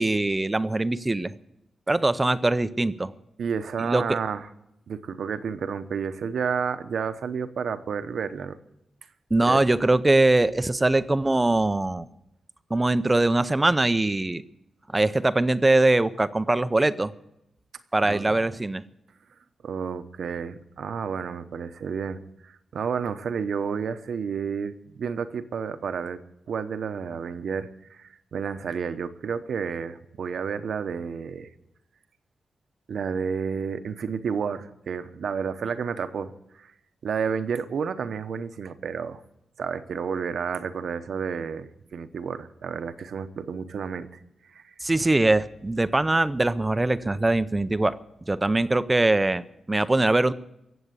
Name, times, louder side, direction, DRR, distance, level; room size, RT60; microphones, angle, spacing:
voice 1, 0.0-1.3 1.9-3.1 3.8-4.2 9.3-12.1 12.7-14.4 14.9-17.1 17.9-18.8 44.8-48.0 48.3-50.3, right 2 dB, 15° right, 14 dB, 0.5 m, -22 dB
voice 2, 3.4-4.5 4.9-8.6 9.4-9.6 18.1-18.3 19.6-26.2 26.5-31.5 32.9-36.7 37.0-39.2 39.6-44.1 44.5-44.7, right 6 dB, 60° right, 10 dB, 0.9 m, -31 dB
20.5 x 8.1 x 8.2 m, 0.85 s
wide cardioid pair, 170°, 0 cm